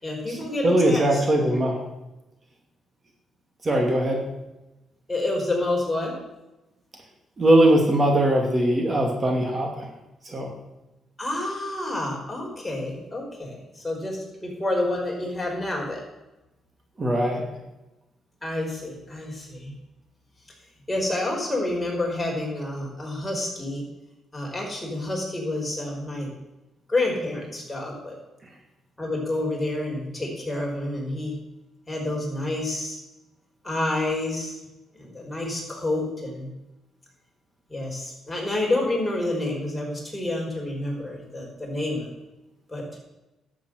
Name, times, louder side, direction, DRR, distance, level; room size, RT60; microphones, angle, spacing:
voice 1, 0.0-1.2 5.1-6.1 11.2-16.0 18.4-19.7 20.9-23.8 24.3-26.3 26.9-28.2 29.0-31.4 31.9-33.0 33.6-34.6 34.9-36.5 37.7-42.1 42.7-43.0, left 2 dB, 10° left, -2 dB, 5.4 m, -28 dB
voice 2, 0.6-1.8 3.6-4.2 7.4-9.9 10.2-10.5 17.0-17.4, right 1 dB, 30° right, 2 dB, 2.5 m, -21 dB
11.5 x 7.5 x 8.0 m, 0.99 s
cardioid pair, 90°, 0 cm